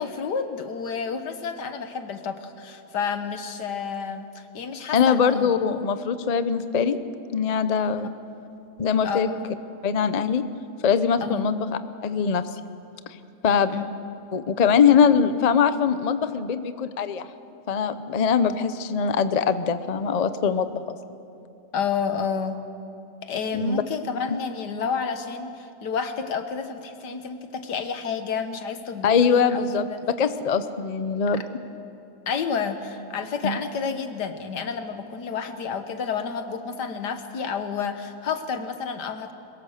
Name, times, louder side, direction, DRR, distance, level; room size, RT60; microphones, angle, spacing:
voice 1, 0.0-5.5 8.0-8.1 9.0-9.4 11.2-11.4 13.7-13.9 21.7-22.6 23.2-30.0 31.3-31.5 32.3-39.3, left 6 dB, 85° left, 8 dB, 1.8 m, -30 dB
voice 2, 4.9-7.0 7.3-8.1 8.8-9.3 9.8-10.4 10.8-12.5 13.4-13.8 14.3-17.2 17.7-21.2 23.5-23.8 24.3-24.4 29.0-31.4 33.4-33.6, left 6 dB, 40° left, 11 dB, 0.5 m, -22 dB
22.5 x 21.5 x 6.6 m, 2.9 s
omnidirectional pair, 1.7 m